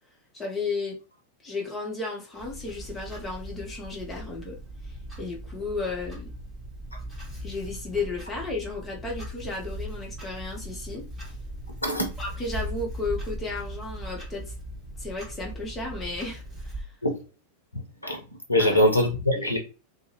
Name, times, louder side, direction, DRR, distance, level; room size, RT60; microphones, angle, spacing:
voice 1, 0.3-1.0 1.4-4.6 4.8-6.3 7.4-11.1 12.2-14.5 15.0-16.9 18.6-18.8 19.4-19.6, left 3 dB, 15° left, 0.8 m, -34 dB
Clock, 2.4-16.8, right 1 dB, 15° right, 1.1 m, -39 dB
voice 2, 17.7-18.2 18.5-19.6, left 1 dB, 85° left, 0.6 m, -23 dB
2.5 x 2.0 x 2.9 m
figure-of-eight pair, 90°, 0 cm